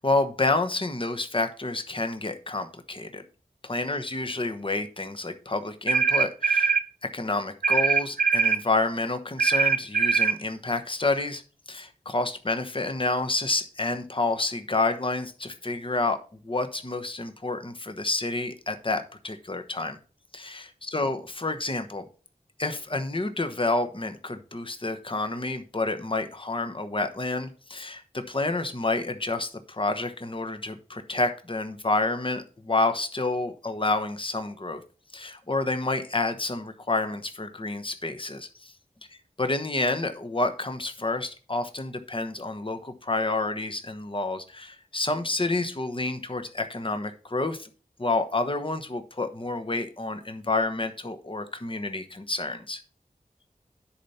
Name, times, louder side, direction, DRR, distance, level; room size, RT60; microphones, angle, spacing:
voice 1, 0.0-3.2 3.6-6.8 7.0-11.4 11.7-16.2 16.4-20.0 20.3-22.0 22.6-34.8 35.1-38.7 39.4-47.7 48.0-52.8, left 2 dB, 35° left, 7 dB, 1.1 m, -29 dB
sound 1, 5.9-6.9 7.6-8.6 9.4-10.4, right 6 dB, 80° right, 0.7 m, -22 dB
10.0 x 4.3 x 5.6 m, 0.37 s
wide cardioid pair, 45°, 15 cm